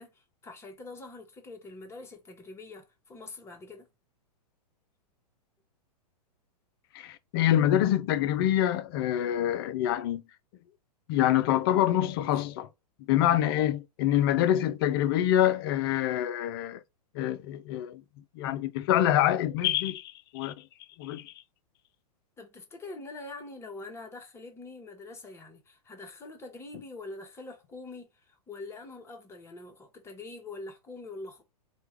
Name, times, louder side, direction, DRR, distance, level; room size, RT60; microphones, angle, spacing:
voice 1, 0.0-3.9 12.3-12.4 22.4-31.4, left 3 dB, 10° left, 0.9 m, -44 dB
voice 2, 6.9-10.2 11.1-12.7 13.1-16.8 17.1-18.0 18.3-20.5 21.0-21.3, left 12 dB, 35° left, 0.4 m, -26 dB
4.5 x 2.3 x 3.3 m
figure-of-eight pair, 105°, 21 cm